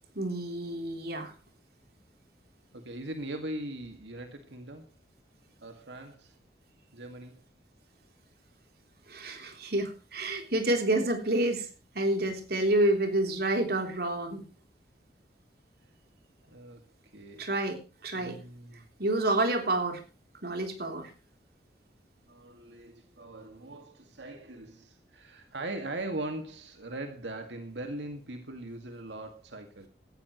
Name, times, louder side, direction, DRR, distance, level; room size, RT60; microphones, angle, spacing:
voice 1, 0.2-1.3 9.1-11.7 12.0-14.4 17.4-18.4 19.0-20.0 20.4-21.1, right 1 dB, 60° right, 5 dB, 3.5 m, -28 dB
voice 2, 2.7-4.9 5.6-6.3 6.9-7.4 16.4-16.8 17.1-17.4 18.2-18.9 22.3-29.9, right 1 dB, 90° right, 5 dB, 2.1 m, -40 dB
17.5 x 14.5 x 3.1 m, 0.32 s
head